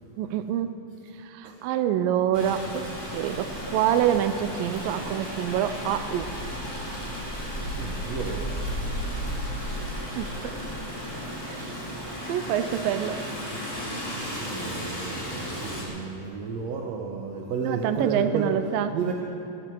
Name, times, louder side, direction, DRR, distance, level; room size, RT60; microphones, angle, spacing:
voice 1, 0.2-0.7 1.2-6.3 9.1-9.4 10.1-10.6 11.4-11.8 12.3-13.2 17.6-19.0, right 10 dB, 85° right, 10 dB, 2.4 m, -26 dB
Rain, 2.3-15.8, equal, 5° left, 2.9 m, -34 dB
voice 2, 7.7-8.4 14.4-18.5 18.9-19.1, right 5 dB, 65° right, 0 dB, 1.8 m, -32 dB
21.0 x 14.5 x 4.6 m, 2.6 s
omnidirectional pair, 4.0 m